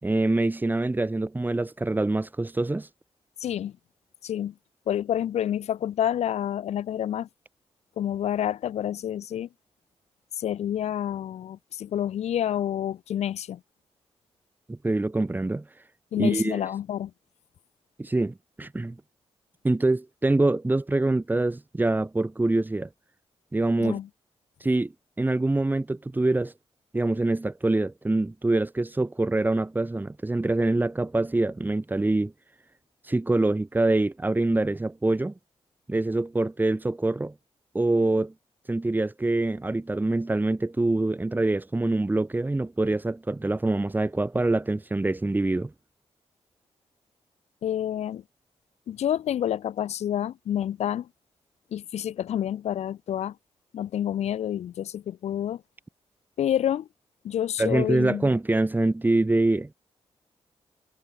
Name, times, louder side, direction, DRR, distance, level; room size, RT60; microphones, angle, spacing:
voice 1, 0.0-2.9 14.7-15.6 16.2-16.6 18.0-19.0 19.6-22.9 23.5-24.0 24.6-24.9 25.2-26.5 26.9-32.3 33.1-35.3 35.9-37.3 37.7-38.3 38.7-45.7 57.6-59.7, right 2 dB, 15° right, 7.3 m, -25 dB
voice 2, 3.4-3.7 4.2-4.5 4.9-7.3 8.0-9.5 10.4-13.6 16.1-17.1 23.8-24.1 47.6-48.2 48.9-51.1 51.7-53.3 53.7-55.6 56.4-56.9 57.2-58.3, left 10 dB, 85° left, 2.8 m, -28 dB
cardioid pair, 105°, 11 cm